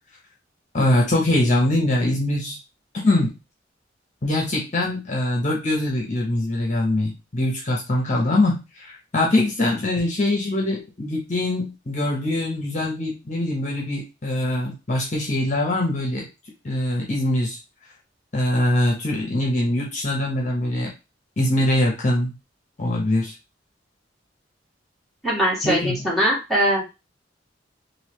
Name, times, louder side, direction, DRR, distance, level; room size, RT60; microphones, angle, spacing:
voice 1, 0.7-2.6 3.0-3.3 4.2-16.3 16.6-17.6 18.3-20.9 21.4-22.3 22.8-23.3 25.6-25.9, left 1 dB, 40° left, -1 dB, 1.0 m, -23 dB
voice 2, 25.2-26.8, right 1 dB, ahead, -6 dB, 1.6 m, -21 dB
3.9 x 2.7 x 3.1 m, 0.27 s
head